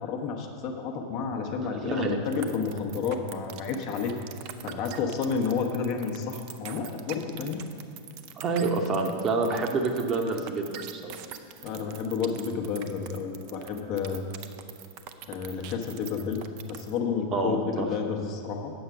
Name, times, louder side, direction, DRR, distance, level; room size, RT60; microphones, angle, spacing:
voice 1, 0.0-4.2 4.6-7.6 11.6-14.3 15.3-16.4 16.7-18.7, left 5 dB, 45° left, 3 dB, 0.9 m, -30 dB
voice 2, 1.8-2.2 8.4-11.2 17.3-17.9, right 3 dB, 30° right, 3 dB, 0.9 m, -28 dB
sound 1, 2.3-17.0, right 11 dB, 45° right, 0.5 m, -43 dB
8.7 x 6.7 x 5.6 m, 2.7 s
figure-of-eight pair, 90°, 0 cm